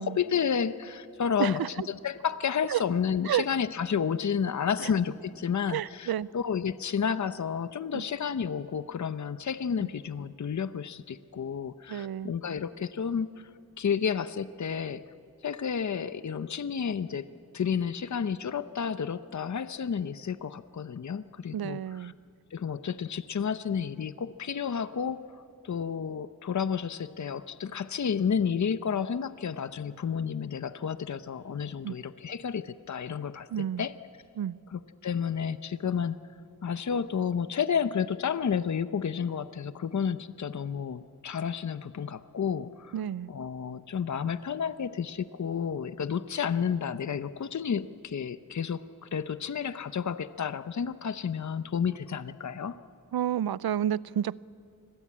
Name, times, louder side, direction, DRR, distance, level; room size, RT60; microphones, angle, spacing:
voice 1, 0.0-1.6 1.9-13.5 13.8-15.0 15.4-17.3 17.5-22.1 22.5-25.2 25.6-33.5 33.8-33.9 34.7-36.2 36.6-42.9 43.3-52.8, left 7 dB, 50° left, 12 dB, 0.8 m, -31 dB
voice 2, 1.4-1.9 2.7-2.8 3.2-3.4 4.8-4.9 5.7-6.3 7.9-8.0 11.9-12.3 21.5-22.1 31.8-32.0 33.5-33.9 34.4-34.6 42.9-43.3 53.1-54.4, right 10 dB, 90° right, 21 dB, 0.5 m, -30 dB
28.0 x 21.0 x 8.6 m, 2.4 s
wide cardioid pair, 85°, 36 cm